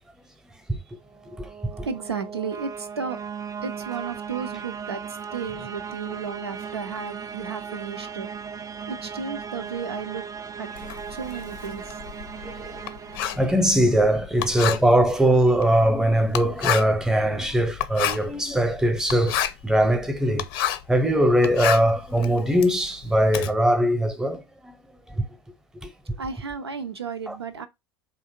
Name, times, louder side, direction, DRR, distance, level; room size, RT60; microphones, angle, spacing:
sound 1, 1.1-14.1, right 6 dB, 25° right, 0.4 m, -37 dB
voice 1, 1.9-3.2 3.6-8.3 8.9-10.3 10.6-10.7 11.1-12.0 14.4-14.6 26.2-27.7, right 5 dB, 90° right, 0.5 m, -33 dB
Writing, 10.8-21.0 21.3-23.5, left 11 dB, 65° left, 0.5 m, -30 dB
voice 2, 12.4-12.8 13.1-20.5 20.9-24.7 25.1-25.2 25.8-25.9 27.3-27.4, right 1 dB, 5° right, 0.8 m, -21 dB
3.4 x 2.6 x 4.4 m
figure-of-eight pair, 75°, 13 cm